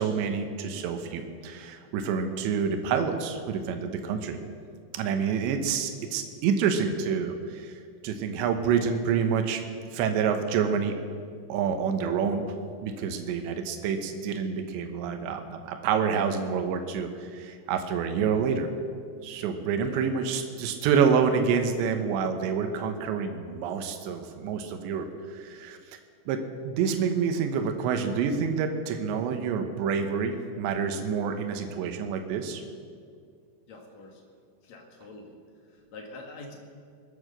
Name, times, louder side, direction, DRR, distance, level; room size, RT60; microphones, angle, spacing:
voice 1, 0.0-4.4 4.9-7.7 8.0-9.6 9.9-11.0 11.5-12.4 12.8-18.7 19.2-25.8 26.3-32.6, right 6 dB, 70° right, 6 dB, 3.2 m, -28 dB
voice 2, 33.7-34.2 34.6-35.4 35.7-36.6, left 2 dB, 50° left, 1 dB, 2.2 m, -45 dB
21.5 x 9.7 x 6.7 m, 2.2 s
omnidirectional pair, 5.7 m